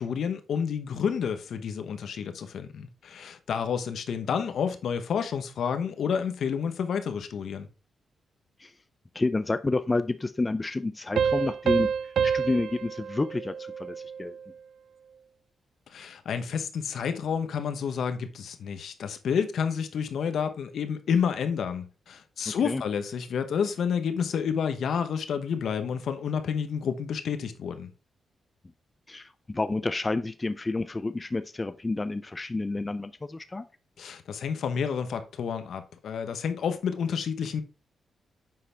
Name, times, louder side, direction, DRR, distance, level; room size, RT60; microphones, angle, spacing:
voice 1, 0.0-7.7 15.9-27.9 34.0-37.6, left 7 dB, 75° left, 1.0 m, -30 dB
voice 2, 9.1-14.4 22.5-22.8 29.1-33.7, left 2 dB, 25° left, 0.5 m, -30 dB
sound 1, 11.2-14.5, right 7 dB, 75° right, 0.3 m, -28 dB
7.6 x 5.6 x 3.4 m
cardioid pair, 80°, 0 cm